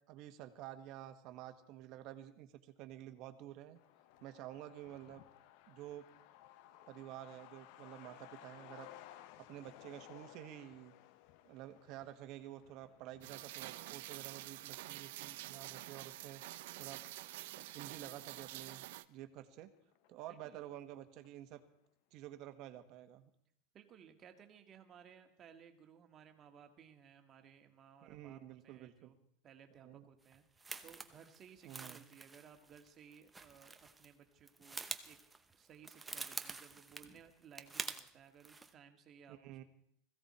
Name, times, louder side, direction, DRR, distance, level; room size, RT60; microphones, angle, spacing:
voice 1, 0.1-3.8 4.2-5.2 5.7-6.0 6.9-8.9 9.5-10.9 11.4-16.4 16.8-17.0 17.6-18.8 19.1-19.7 20.1-21.6 22.1-23.3 28.0-29.1 29.8-30.0 31.6-32.0 39.3-39.6, right 13 dB, 45° right, 8 dB, 1.5 m, -50 dB
Truck, 3.7-18.9 19.3-19.4 19.6-20.5 20.8-20.9 21.2-21.6, left 13 dB, 55° left, 0.8 m, -60 dB
Rain, 13.2-19.0, right 17 dB, 70° right, 0.8 m, -48 dB
voice 2, 20.3-20.6 23.7-29.2 29.4-35.2 35.5-39.6, right 7 dB, 30° right, 6 dB, 1.8 m, -60 dB
sound 1, 30.3-34.1 34.4-38.1 38.4-38.7, right 3 dB, 10° right, 0.8 m, -47 dB
20.5 x 15.5 x 4.3 m, 0.69 s
supercardioid pair, 155°, 0 cm